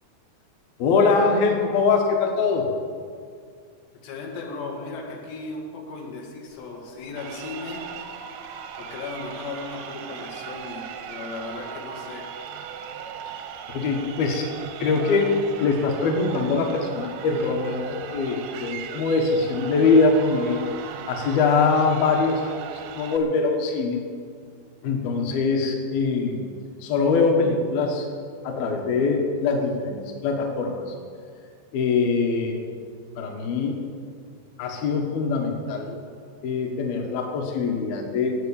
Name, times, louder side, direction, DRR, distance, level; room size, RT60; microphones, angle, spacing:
voice 1, 0.8-2.7 13.7-14.5 14.8-20.6 21.1-24.0 24.8-26.4 26.8-28.1 28.4-31.0 31.7-32.6 33.2-33.9 34.6-36.0 36.4-38.4, left 4 dB, 70° left, 2 dB, 3.0 m, -23 dB
voice 2, 4.0-7.8 8.8-12.3, left 3 dB, 85° left, -1 dB, 4.3 m, -36 dB
Crowd, 7.1-23.2, right 8 dB, 85° right, 3.3 m, -38 dB
16.5 x 7.7 x 8.6 m, 2.1 s
omnidirectional pair, 4.8 m